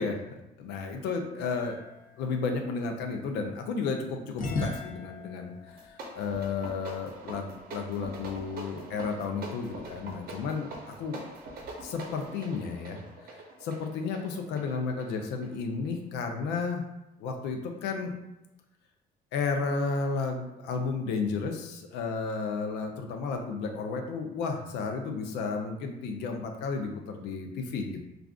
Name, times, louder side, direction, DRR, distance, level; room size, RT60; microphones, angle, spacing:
voice 1, 0.0-1.8 2.2-11.2 11.8-13.0 13.3-16.9 17.2-18.1 19.3-28.0, left 4 dB, 85° left, 4 dB, 0.5 m, -33 dB
sound 1, 1.5-3.6 4.4-7.3, left 2 dB, 50° left, 0.7 m, -39 dB
sound 2, 5.7-16.0, right 2 dB, 60° right, 0.7 m, -44 dB
2.4 x 2.4 x 3.5 m, 0.92 s
cardioid pair, 110°, 17 cm